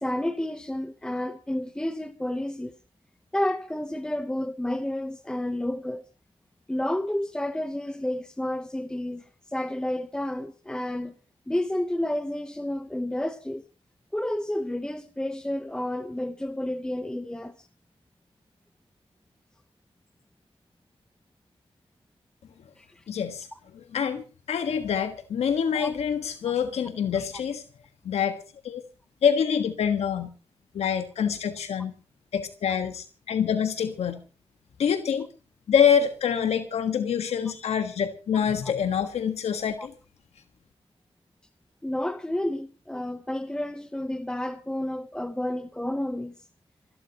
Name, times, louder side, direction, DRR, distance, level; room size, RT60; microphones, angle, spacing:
voice 1, 0.0-2.7 3.3-6.1 6.7-11.1 11.5-13.6 14.1-17.7 22.8-23.0 25.7-25.9 26.4-26.5 38.6-38.7 39.8-39.9 41.8-46.3, left 1 dB, 10° left, 1.0 m, -30 dB
voice 2, 23.1-23.5 23.9-27.6 28.0-28.4 28.6-28.8 29.2-30.3 30.7-31.9 32.3-34.2 34.8-35.3 35.7-39.9, left 7 dB, 85° left, 1.6 m, -26 dB
27.5 x 12.5 x 3.0 m
wide cardioid pair, 125°, 11 cm